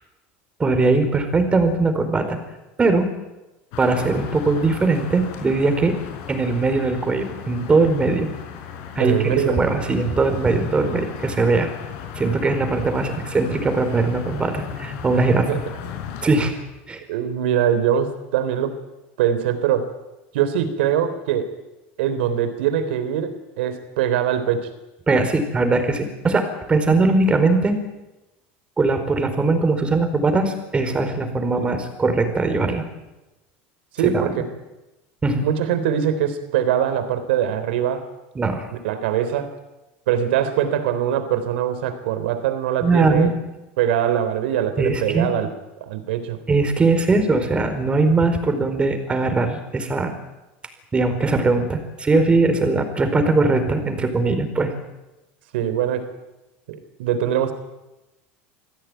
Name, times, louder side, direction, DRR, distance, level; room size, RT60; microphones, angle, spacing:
voice 1, 0.6-2.4 2.8-3.1 3.8-5.9 6.3-8.3 8.9-11.7 12.1-15.5 16.2-16.5 16.9-17.0 25.1-27.8 28.8-32.8 34.0-34.1 35.2-35.5 38.3-38.7 42.8-43.3 44.8-45.3 46.5-50.1 50.9-54.7, right 3 dB, 20° right, 8 dB, 4.6 m, -20 dB
sound 1, 3.7-16.3, left 8 dB, 65° left, 5.9 m, -35 dB
voice 2, 9.0-9.6 15.5-15.6 17.1-18.8 19.2-19.9 20.3-21.6 22.0-24.7 31.5-31.7 33.9-34.5 35.4-38.1 38.8-39.6 40.1-43.3 43.8-45.5 45.8-46.4 55.5-56.1 56.7-57.5, right 9 dB, 85° right, 11 dB, 3.6 m, -22 dB
26.0 x 16.5 x 9.2 m, 1.0 s
supercardioid pair, 120°, 6 cm